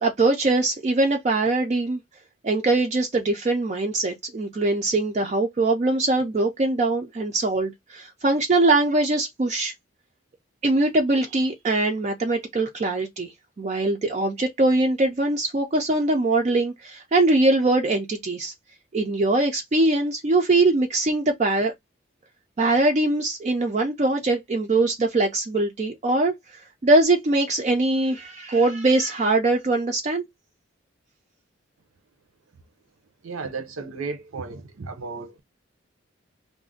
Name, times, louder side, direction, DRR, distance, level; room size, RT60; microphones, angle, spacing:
voice 1, 0.0-2.0 2.4-9.7 10.6-18.5 18.9-21.7 22.6-30.2, right 2 dB, 35° right, 0.3 m, -22 dB
voice 2, 33.2-35.4, right 4 dB, 85° right, 0.6 m, -34 dB
2.4 x 2.0 x 3.6 m
head